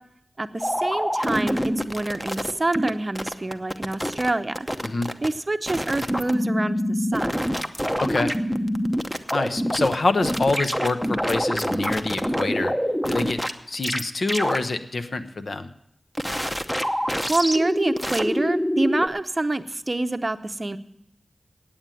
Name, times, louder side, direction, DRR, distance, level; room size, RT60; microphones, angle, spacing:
voice 1, 0.4-4.7 5.2-7.5 17.3-20.8, right 2 dB, 35° right, 10 dB, 0.6 m, -26 dB
sound 1, 0.6-2.9 3.2-4.3 4.6-5.3 5.7-10.0 10.2-13.5 13.8-14.0 14.3-14.6 16.1-19.1, equal, 5° left, 0.8 m, -26 dB
voice 2, 8.0-8.3 9.3-12.7 13.1-13.4 13.7-15.7, left 3 dB, 65° left, 10 dB, 0.8 m, -26 dB
8.9 x 8.6 x 9.1 m, 0.79 s
cardioid pair, 55°, 0 cm